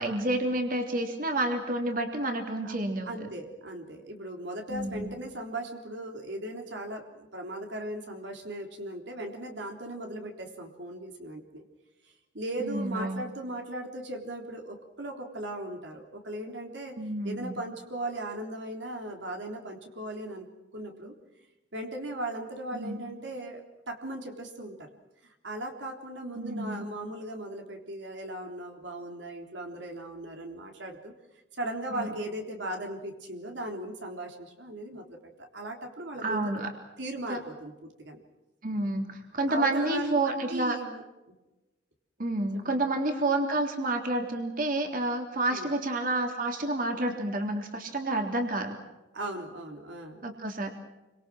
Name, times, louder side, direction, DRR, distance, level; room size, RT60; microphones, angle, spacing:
voice 1, 0.0-3.1 4.7-5.1 12.6-13.2 17.0-17.6 22.7-23.0 26.3-26.9 31.9-32.1 36.2-36.7 37.3-37.4 38.6-40.8 42.2-48.8 50.2-50.7, right 2 dB, 50° right, 3 dB, 3.5 m, -29 dB
voice 2, 3.1-11.6 12.3-17.0 17.2-21.1 21.7-24.9 25.2-31.1 31.5-36.4 37.0-38.2 39.5-41.0 42.6-42.8 45.5-45.7 49.1-50.3, right 1 dB, 75° right, 2 dB, 3.6 m, -38 dB
29.5 x 25.5 x 6.3 m, 1.0 s
head